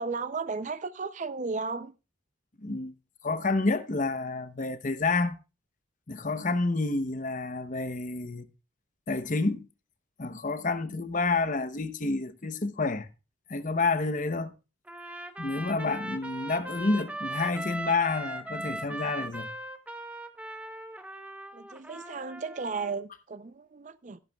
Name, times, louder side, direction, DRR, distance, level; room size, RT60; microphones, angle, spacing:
voice 1, 0.0-1.9 21.5-24.2, right 4 dB, 35° right, 0.5 m, -34 dB
voice 2, 2.6-2.9 3.2-5.4 6.1-8.5 9.1-9.7 10.2-13.1 13.5-14.5 15.4-19.5, left 3 dB, 40° left, 0.8 m, -29 dB
Trumpet, 14.9-23.0, right 1 dB, 5° right, 0.9 m, -39 dB
14.5 x 11.0 x 2.3 m
head